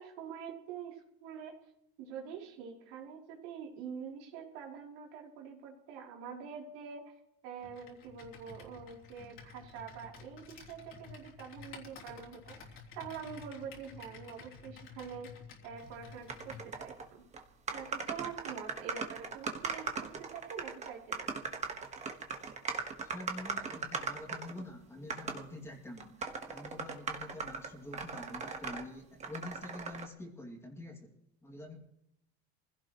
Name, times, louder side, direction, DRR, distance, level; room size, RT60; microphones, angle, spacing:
voice 1, 0.0-1.6 2.0-7.2 7.4-15.3 15.6-17.2 17.7-21.3, right 7 dB, 80° right, -1 dB, 3.5 m, -45 dB
Computer keyboard, 7.6-16.7, left 5 dB, 40° left, 3.4 m, -52 dB
sound 1, 16.3-17.1 17.3-17.4 17.7-24.6 25.1-25.4 26.0-28.8 29.2-30.0, right 5 dB, 20° right, 1.5 m, -39 dB
voice 2, 23.0-31.1 31.4-31.8, left 2 dB, 10° left, 0 dB, 2.5 m, -47 dB
24.0 x 16.5 x 3.1 m, 0.81 s
cardioid pair, 150°, 31 cm